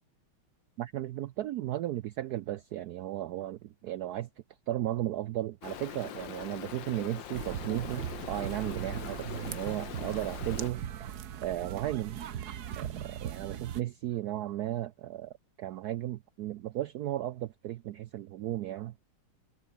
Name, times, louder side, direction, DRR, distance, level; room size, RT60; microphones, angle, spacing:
voice 1, 0.8-4.3 4.7-11.1 11.4-12.2 12.8-15.3 15.6-18.9, right 13 dB, 90° right, 0.8 m, -35 dB
Stream, 5.6-10.7, left 10 dB, 65° left, 1.8 m, -43 dB
sound 1, 7.3-13.8, right 10 dB, 55° right, 1.4 m, -39 dB
omnidirectional pair, 2.3 m